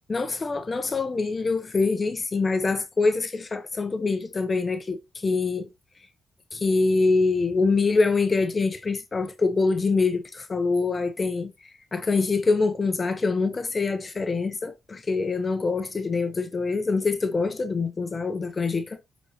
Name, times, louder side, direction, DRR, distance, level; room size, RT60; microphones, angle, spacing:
voice 1, 0.1-5.7 6.5-11.5 11.9-19.0, left 4 dB, 30° left, 0.8 m, -25 dB
11.5 x 4.0 x 2.9 m
cardioid pair, 90°, 0 cm